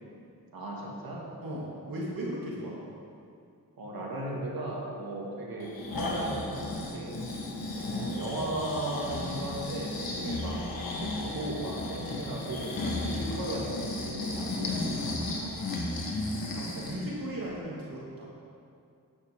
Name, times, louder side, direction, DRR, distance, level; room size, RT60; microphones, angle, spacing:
voice 1, 0.5-1.3 3.8-7.2 7.7-14.8, right 1 dB, 90° right, -3 dB, 2.2 m, -36 dB
voice 2, 1.4-2.8 15.0-15.8 16.5-18.3, equal, 70° right, -6 dB, 2.6 m, -37 dB
Breathing, 5.6-17.0 17.5-17.6, left 2 dB, 90° left, 1.6 m, -34 dB
13.5 x 9.6 x 3.7 m, 2.5 s
cardioid pair, 70°, 35 cm